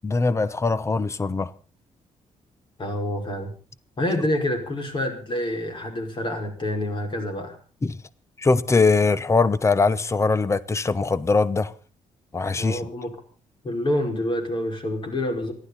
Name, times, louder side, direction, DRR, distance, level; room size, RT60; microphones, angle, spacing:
voice 1, 0.0-1.5 7.8-8.0 8.4-11.7 12.3-12.8, left 3 dB, 20° left, 0.9 m, -21 dB
voice 2, 2.8-3.6 4.0-7.6 12.5-13.2 13.6-15.5, left 1 dB, 40° left, 5.3 m, -27 dB
28.0 x 12.0 x 4.1 m
cardioid pair, 125°, 13 cm